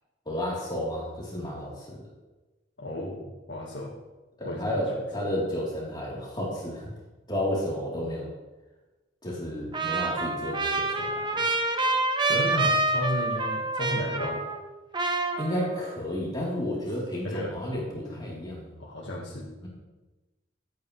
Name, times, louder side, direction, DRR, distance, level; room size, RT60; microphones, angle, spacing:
voice 1, 0.3-2.0 4.4-6.9 7.3-8.3 9.2-11.5 15.4-18.7 19.6-19.7, left 1 dB, 25° left, -5 dB, 3.6 m, -32 dB
voice 2, 2.8-3.9 4.4-4.8 12.3-14.4 17.2-17.5 18.1-18.2 18.8-19.5, left 1 dB, 85° left, -4 dB, 1.8 m, -33 dB
Trumpet, 9.7-14.7 14.9-16.0, right 2 dB, 25° right, 0.9 m, -27 dB
16.0 x 9.1 x 3.3 m, 1.1 s
head